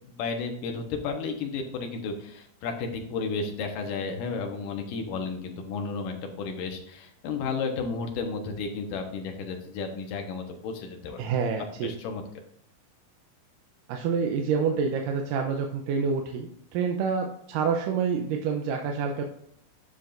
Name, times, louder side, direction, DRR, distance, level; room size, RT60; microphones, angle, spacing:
voice 1, 0.1-11.2 11.8-12.2, left 4 dB, 70° left, 3 dB, 2.7 m, -33 dB
voice 2, 11.2-11.9 13.9-19.2, right 6 dB, 75° right, 3 dB, 2.2 m, -27 dB
9.9 x 6.9 x 2.6 m, 0.71 s
omnidirectional pair, 4.2 m